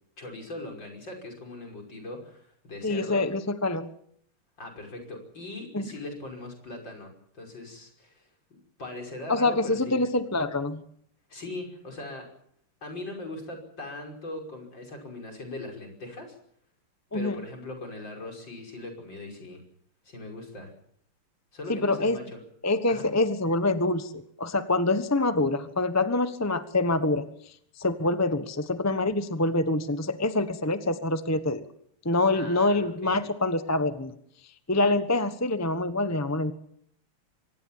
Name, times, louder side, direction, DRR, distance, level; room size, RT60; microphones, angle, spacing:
voice 1, 0.2-3.3 4.6-10.0 11.3-12.3 12.8-16.4 17.1-19.6 20.0-20.7 21.5-22.4 22.9-23.1 32.3-33.2, left 2 dB, 55° left, 2 dB, 6.3 m, -40 dB
voice 2, 2.8-3.9 5.7-5.9 9.3-10.8 17.1-17.4 21.7-22.2 22.6-24.1 24.4-27.3 27.8-31.6 32.0-34.1 34.7-36.5, left 2 dB, 10° left, 10 dB, 0.7 m, -25 dB
25.0 x 19.0 x 7.4 m, 0.66 s
omnidirectional pair, 2.4 m